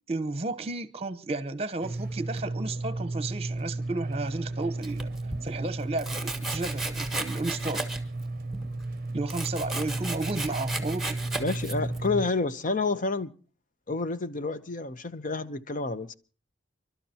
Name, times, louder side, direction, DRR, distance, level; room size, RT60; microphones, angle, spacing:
voice 1, 0.1-5.1 5.4-7.9 9.1-11.2, right 2 dB, 35° right, 0.9 m, -33 dB
sound 1, 1.8-12.3, right 2 dB, 50° right, 0.6 m, -34 dB
Domestic sounds home sounds, 4.8-5.4 6.0-8.2 8.5-12.1, right 2 dB, ahead, 1.5 m, -35 dB
voice 2, 11.4-13.3 13.9-16.1, left 3 dB, 45° left, 0.8 m, -29 dB
30.0 x 12.5 x 2.9 m
head